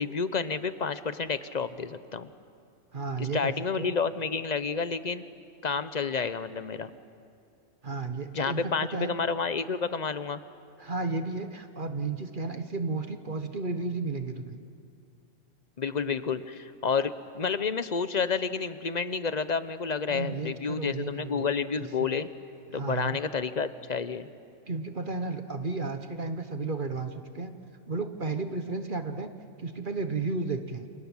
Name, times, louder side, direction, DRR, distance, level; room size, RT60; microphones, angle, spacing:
voice 1, 0.0-2.3 3.2-5.3 5.6-6.9 8.3-10.4 15.8-22.3 22.7-24.3, left 5 dB, 35° left, 12 dB, 0.9 m, -30 dB
voice 2, 2.9-3.9 7.8-9.1 10.8-14.6 20.1-21.5 22.0-22.1 22.7-23.2 24.7-27.5 27.9-29.3 29.6-30.9, right 3 dB, 40° right, 8 dB, 1.3 m, -33 dB
29.5 x 27.5 x 7.3 m, 2.4 s
omnidirectional pair, 1.3 m